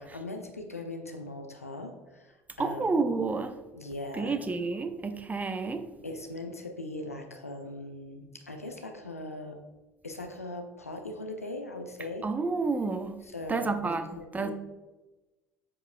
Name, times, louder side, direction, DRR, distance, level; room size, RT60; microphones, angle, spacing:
voice 1, 0.0-3.1 3.7-4.4 6.0-9.6 10.0-12.2 13.2-13.7 14.1-14.5, left 2 dB, 90° left, 5 dB, 0.6 m, -40 dB
voice 2, 2.6-3.5 4.1-5.9 12.2-13.2 13.5-14.5, right 4 dB, 20° right, 8 dB, 0.6 m, -30 dB
7.3 x 6.8 x 2.3 m, 1.1 s
figure-of-eight pair, 60°, 8 cm